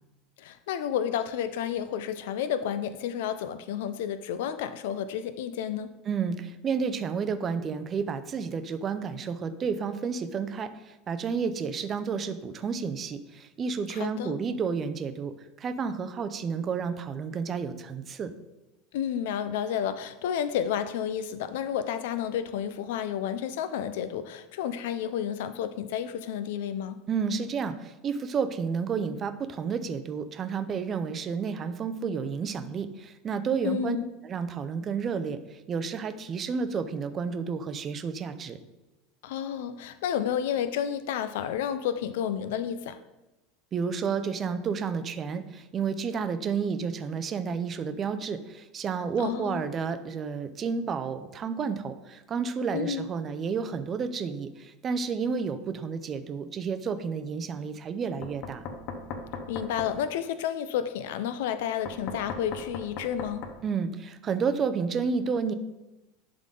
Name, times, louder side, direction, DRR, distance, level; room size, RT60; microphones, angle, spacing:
voice 1, 0.4-6.0 13.9-14.4 18.9-27.0 33.6-34.1 39.2-43.0 49.2-49.6 52.7-53.1 59.5-63.5, left 9 dB, 80° left, 11 dB, 0.4 m, -31 dB
voice 2, 6.1-18.3 27.1-34.0 34.2-38.6 43.7-58.6 63.6-65.5, right 6 dB, 25° right, 10 dB, 0.5 m, -31 dB
Knock, 58.2-59.9 61.9-63.6, left 5 dB, 50° left, 0.8 m, -37 dB
11.0 x 3.8 x 3.8 m, 1.0 s
supercardioid pair, 155°, 0 cm